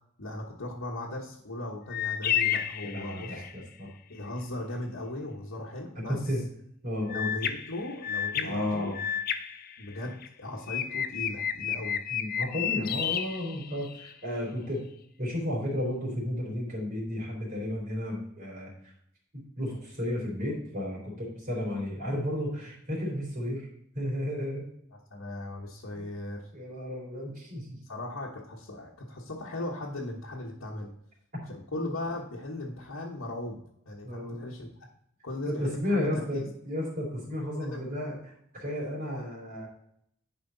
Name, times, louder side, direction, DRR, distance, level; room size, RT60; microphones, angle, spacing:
voice 1, 0.2-3.4 4.1-6.3 7.1-8.9 9.8-12.0 24.9-26.5 27.8-30.9 31.5-33.6 33.8-34.7 35.2-36.5 37.6-37.9, left 1 dB, 80° left, -5 dB, 1.3 m, -38 dB
sound 1, 1.9-3.6 7.1-10.3 10.7-14.1, left 9 dB, 45° left, 0.6 m, -32 dB
voice 2, 2.8-3.9 6.1-6.4 6.8-7.3 8.4-9.0 12.1-14.8 15.2-18.9 19.6-23.7 23.9-24.7 25.9-26.0 26.5-27.8 34.0-34.4 35.5-38.1 38.5-39.7, left 1 dB, 45° right, -4 dB, 3.7 m, -33 dB
11.0 x 5.0 x 4.0 m, 0.72 s
head